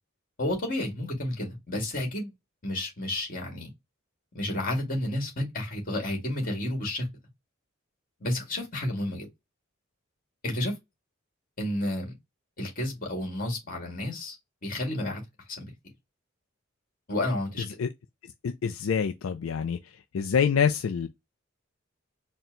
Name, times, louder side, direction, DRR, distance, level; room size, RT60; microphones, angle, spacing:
voice 1, 0.4-2.3 2.6-3.7 4.3-7.1 8.2-9.3 10.4-10.7 11.6-12.1 12.6-14.4 14.6-15.2 15.6-15.7 17.1-17.7, left 1 dB, 45° left, 1.9 m, -31 dB
voice 2, 18.4-19.8 20.1-21.1, left 6 dB, 80° left, 0.4 m, -26 dB
4.3 x 2.1 x 3.7 m
head